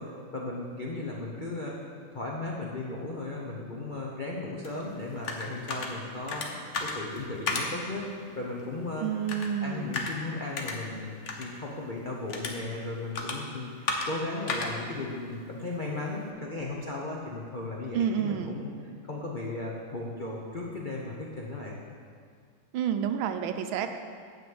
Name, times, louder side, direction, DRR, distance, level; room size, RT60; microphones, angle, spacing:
voice 1, 0.0-8.1 8.4-9.1 9.6-11.1 11.4-21.8, left 2 dB, 70° left, -3 dB, 0.4 m, -36 dB
sound 1, 4.6-16.3, left 3 dB, 50° left, 0.9 m, -37 dB
voice 2, 9.0-10.0 17.9-18.6 22.7-23.9, right 8 dB, 75° right, 7 dB, 1.3 m, -29 dB
9.2 x 4.9 x 7.8 m, 2.1 s
omnidirectional pair, 2.3 m